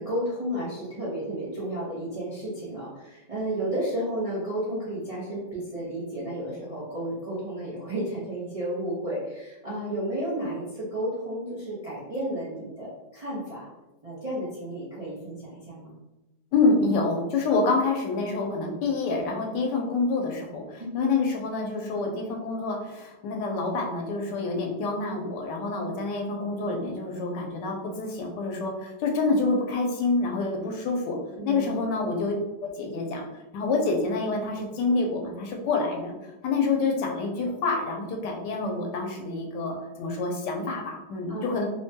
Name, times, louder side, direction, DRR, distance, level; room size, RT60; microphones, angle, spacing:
voice 1, 0.0-13.7 14.0-15.9 20.8-21.0 31.3-31.8 41.3-41.6, right 1 dB, 55° right, -9 dB, 0.4 m, -32 dB
voice 2, 16.5-31.2 31.5-32.3 32.6-33.2 33.5-36.2 36.4-41.6, left 3 dB, 90° left, 1 dB, 1.3 m, -27 dB
3.2 x 2.2 x 2.7 m, 1.0 s
omnidirectional pair, 1.8 m